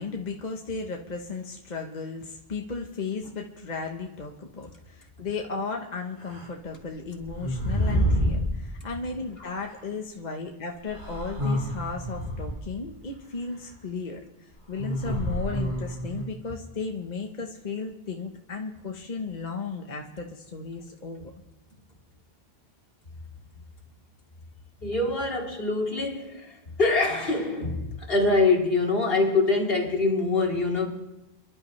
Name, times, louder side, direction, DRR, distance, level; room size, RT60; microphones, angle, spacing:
voice 1, 0.0-14.2 14.7-21.3, left 4 dB, 45° left, 2 dB, 1.1 m, -35 dB
sound 1, 6.2-6.4 7.2-8.5 9.7-9.8 10.9-12.7 14.8-16.2, equal, 55° right, 6.5 m, -28 dB
voice 2, 24.8-30.9, left 3 dB, 70° left, 0 dB, 2.6 m, -24 dB
28.0 x 11.5 x 3.2 m, 1.0 s
omnidirectional pair, 1.0 m